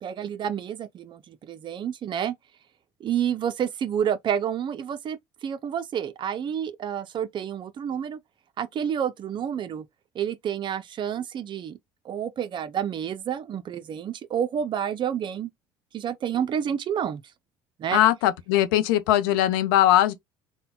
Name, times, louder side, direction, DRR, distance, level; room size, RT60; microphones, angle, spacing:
voice 1, 0.0-2.3 3.0-8.2 8.6-9.9 10.1-11.8 12.0-15.5 15.9-17.2 17.8-18.0, right 8 dB, 45° right, 0.5 m, -29 dB
voice 2, 17.9-20.1, left 13 dB, 85° left, 0.5 m, -20 dB
4.1 x 2.2 x 2.2 m
supercardioid pair, 80°, 12 cm